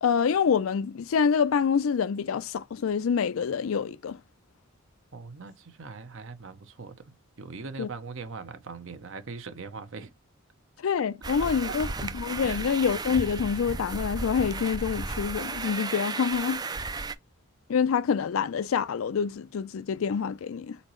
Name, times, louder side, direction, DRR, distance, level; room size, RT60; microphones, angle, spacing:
voice 1, 0.0-4.2 7.8-7.9 10.8-16.6 17.7-20.8, left 6 dB, 70° left, 0.4 m, -26 dB
voice 2, 5.1-6.9 7.4-10.1 11.7-11.8 12.4-12.6, right 4 dB, 60° right, 0.8 m, -40 dB
sound 1, 11.2-17.1, right 3 dB, 20° right, 0.3 m, -34 dB
4.1 x 4.1 x 3.0 m
head